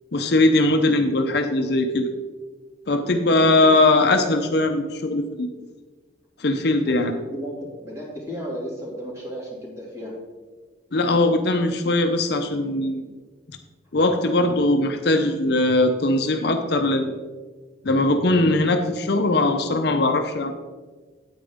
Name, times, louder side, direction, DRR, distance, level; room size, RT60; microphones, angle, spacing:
voice 1, 0.1-2.1 2.9-5.5 6.4-7.1 10.9-13.0 13.9-17.1 17.8-20.5, left 2 dB, 60° left, 6 dB, 0.7 m, -20 dB
voice 2, 3.4-3.8 6.9-10.2, equal, 15° right, -4 dB, 2.5 m, -34 dB
8.9 x 8.8 x 3.6 m, 1.4 s
head